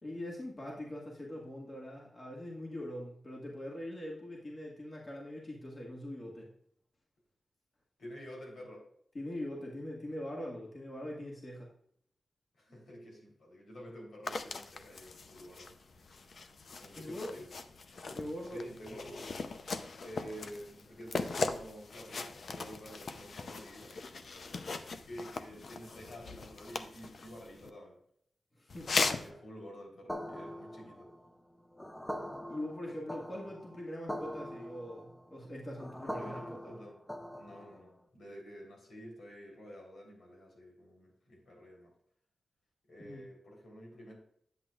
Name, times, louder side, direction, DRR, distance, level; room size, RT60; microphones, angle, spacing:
voice 1, 0.0-6.5 9.1-11.7 16.9-17.4 18.1-18.6 28.5-29.4 32.5-36.8 43.0-43.2, left 1 dB, 35° left, -2 dB, 1.8 m, -42 dB
voice 2, 8.0-8.9 12.6-15.8 16.8-17.5 18.5-19.3 20.0-24.0 25.0-28.0 29.2-31.1 36.0-37.0 37.3-41.9 42.9-44.2, equal, 80° left, 0 dB, 3.5 m, -49 dB
sound 1, 14.3-27.7 28.7-29.3, left 4 dB, 55° left, 0.6 m, -39 dB
sound 2, 30.1-37.9, equal, 5° left, 0.7 m, -43 dB
10.5 x 7.8 x 2.4 m, 0.66 s
wide cardioid pair, 130°, 0 cm